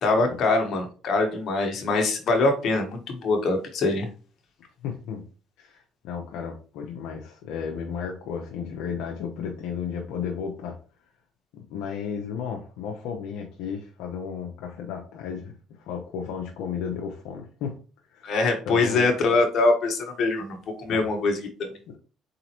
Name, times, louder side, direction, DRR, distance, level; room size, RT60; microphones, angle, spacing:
voice 1, 0.0-4.1 18.2-21.8, left 3 dB, 55° left, 3 dB, 1.3 m, -23 dB
voice 2, 4.8-5.2 5.6-10.8 11.5-17.8 18.1-18.3 18.7-19.1 20.9-21.1 21.9-22.0, left 7 dB, 80° left, 1 dB, 0.7 m, -34 dB
4.1 x 3.8 x 3.0 m, 0.36 s
supercardioid pair, 90°, 0 cm